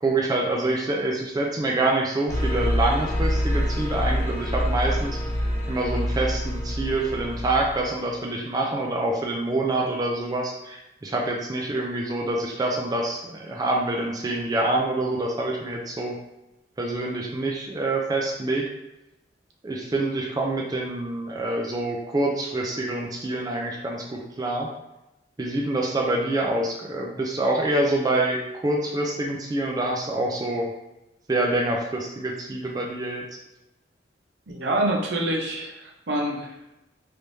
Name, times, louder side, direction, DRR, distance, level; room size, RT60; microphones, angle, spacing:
voice 1, 0.0-5.2 5.7-16.2 16.8-18.7 19.6-24.7 25.4-30.7 31.3-33.3, right 2 dB, 20° right, -1 dB, 0.4 m, -26 dB
sound 1, 2.3-8.0, equal, 10° left, 1.0 m, -26 dB
voice 2, 34.5-36.7, right 1 dB, 75° right, 0 dB, 0.7 m, -27 dB
3.3 x 3.1 x 2.7 m, 0.92 s
head